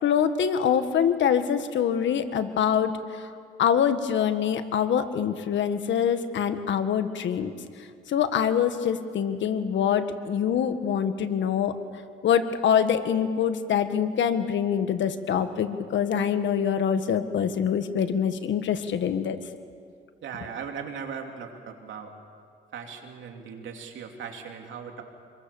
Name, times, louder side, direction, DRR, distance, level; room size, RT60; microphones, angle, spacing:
voice 1, 0.0-3.3 3.6-7.5 8.1-11.8 12.2-19.4, left 8 dB, 70° left, 9 dB, 1.6 m, -25 dB
voice 2, 20.2-22.1 22.7-25.0, right 6 dB, 75° right, 3 dB, 3.2 m, -38 dB
26.5 x 22.0 x 7.2 m, 2.2 s
cardioid pair, 90°, 20 cm